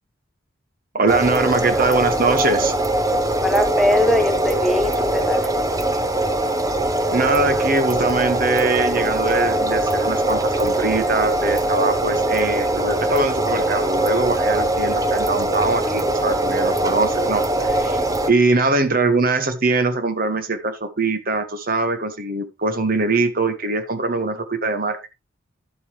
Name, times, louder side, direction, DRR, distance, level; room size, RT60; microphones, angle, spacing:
voice 1, 0.9-2.8 7.1-25.1, right 3 dB, 45° right, 1.5 m, -22 dB
sound 1, 1.1-18.3, right 1 dB, 20° right, 0.9 m, -21 dB
voice 2, 3.4-5.5 18.1-18.3, left 1 dB, ahead, 1.2 m, -21 dB
11.5 x 8.1 x 3.2 m
head